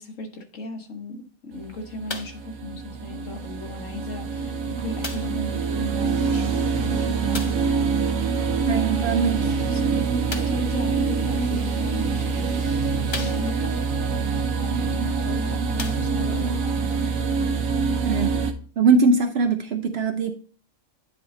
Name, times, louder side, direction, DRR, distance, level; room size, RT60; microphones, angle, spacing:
voice 1, 0.0-8.0 9.4-12.7 13.1-13.7 14.6-16.8, left 2 dB, 65° left, 3 dB, 1.7 m, -36 dB
sound 1, 1.5-18.5, right 5 dB, 75° right, 1.3 m, -25 dB
sound 2, 2.1-2.5 3.4-3.5 5.0-5.5 7.3-7.7 10.3-10.7 11.7-11.8 12.4-12.5 13.1-13.8 15.1-15.2 15.7-16.4 17.3-17.4, left 3 dB, 30° left, 0.5 m, -36 dB
voice 2, 8.7-9.5 18.0-18.4 18.8-20.3, right 4 dB, 60° right, 7 dB, 0.8 m, -21 dB
10.0 x 3.6 x 4.0 m, 0.40 s
omnidirectional pair, 1.5 m